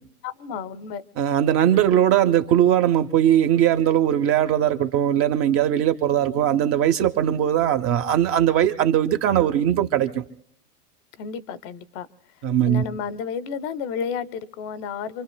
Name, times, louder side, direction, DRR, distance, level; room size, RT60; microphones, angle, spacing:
voice 1, 0.2-1.0 11.2-12.1 12.7-15.2, left 6 dB, 40° left, 0.7 m, -32 dB
voice 2, 1.2-10.2 12.4-12.8, right 10 dB, 30° right, 0.6 m, -20 dB
27.0 x 24.0 x 2.2 m
hypercardioid pair, 110°, 46 cm